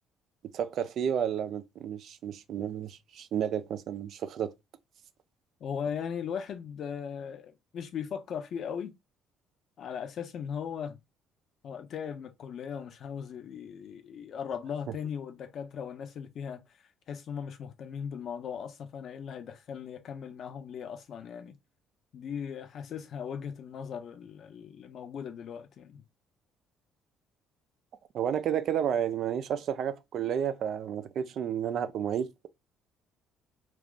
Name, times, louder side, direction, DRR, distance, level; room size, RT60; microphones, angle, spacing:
voice 1, 0.5-4.5 28.1-32.5, right 9 dB, 60° right, 0.4 m, -31 dB
voice 2, 5.6-8.9 9.8-11.0 11.6-16.6 17.1-21.6 22.1-26.0, left 7 dB, 55° left, 0.6 m, -38 dB
2.4 x 2.3 x 3.7 m
hypercardioid pair, 55°, 0 cm